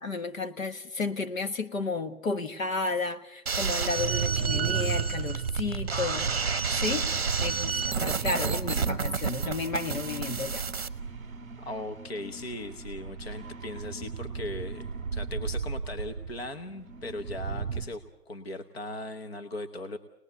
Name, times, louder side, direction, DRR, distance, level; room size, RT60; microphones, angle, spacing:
voice 1, 0.0-6.3 6.8-7.1 7.4-10.6, left 3 dB, 55° left, 8 dB, 1.4 m, -32 dB
sound 1, 3.5-10.9, right 5 dB, 40° right, 1.0 m, -31 dB
sound 2, 4.0-17.8, right 6 dB, 10° right, 1.2 m, -35 dB
voice 2, 11.6-20.0, left 2 dB, 40° left, 7 dB, 1.1 m, -38 dB
25.0 x 19.5 x 8.0 m, 0.82 s
hypercardioid pair, 175°, 47 cm